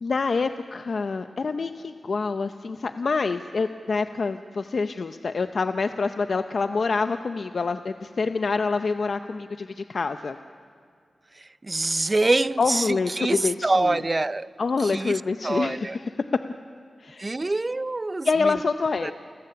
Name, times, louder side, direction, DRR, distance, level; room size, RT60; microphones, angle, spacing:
voice 1, 0.0-10.4 12.6-14.0 14.6-16.2 17.0-17.3 18.2-19.1, left 4 dB, 65° left, 0.6 m, -26 dB
voice 2, 11.4-14.5 14.8-16.0 17.2-18.6 19.0-19.1, right 2 dB, 30° right, 0.4 m, -26 dB
30.0 x 15.5 x 6.8 m
cardioid pair, 65°, 0 cm